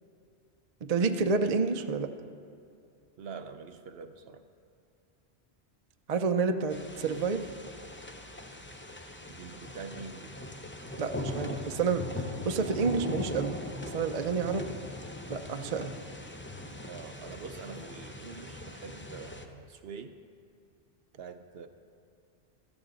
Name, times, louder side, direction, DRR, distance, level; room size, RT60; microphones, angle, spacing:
voice 1, 0.8-2.1 6.1-7.5 11.0-12.0 12.4-13.6 13.8-14.6 15.3-16.0, right 4 dB, 45° right, 7 dB, 0.6 m, -29 dB
voice 2, 3.2-4.4 9.3-10.3 14.4-14.6 16.9-20.2 21.2-21.7, right 5 dB, 65° right, 8 dB, 0.9 m, -44 dB
sound 1, 6.7-19.4, left 2 dB, 15° left, 0.6 m, -40 dB
16.0 x 13.5 x 4.0 m, 2.5 s
omnidirectional pair, 1.2 m